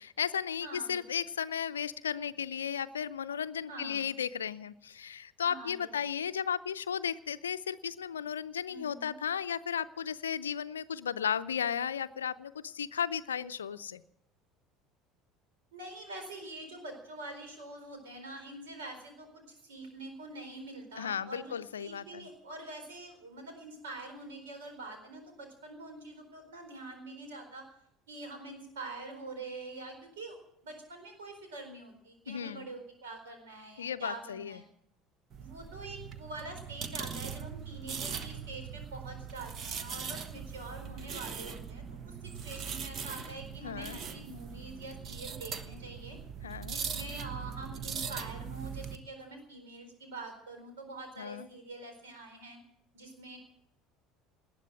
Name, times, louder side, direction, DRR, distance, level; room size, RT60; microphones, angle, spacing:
voice 1, 0.0-14.0 21.0-22.3 32.3-32.7 33.8-34.6 43.6-44.0 46.4-46.8 51.2-51.5, left 8 dB, 75° left, 14 dB, 0.5 m, -35 dB
voice 2, 0.6-1.0 3.7-4.1 5.4-5.9 8.7-9.1 15.7-27.7 28.1-30.4 30.6-34.6 35.4-46.2 46.6-52.6 52.9-53.4, right 2 dB, 70° right, 5 dB, 4.3 m, -45 dB
sound 1, 35.3-49.0, right 6 dB, 40° right, 1.2 m, -40 dB
19.0 x 9.9 x 7.6 m, 0.75 s
figure-of-eight pair, 65°, 0 cm